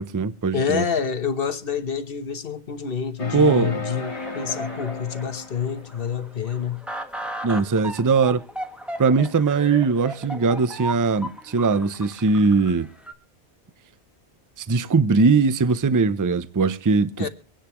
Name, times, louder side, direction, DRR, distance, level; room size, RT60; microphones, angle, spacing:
voice 1, 0.0-0.8 3.3-3.8 7.4-8.4 9.0-12.9 14.6-17.3, right 4 dB, 25° right, 0.4 m, -20 dB
voice 2, 0.5-6.8 17.2-17.3, left 7 dB, 55° left, 1.2 m, -27 dB
sound 1, 3.2-6.2, left 2 dB, 30° left, 1.1 m, -34 dB
russian police, 4.0-13.1, right 1 dB, ahead, 1.4 m, -37 dB
24.5 x 10.0 x 3.0 m
omnidirectional pair, 1.2 m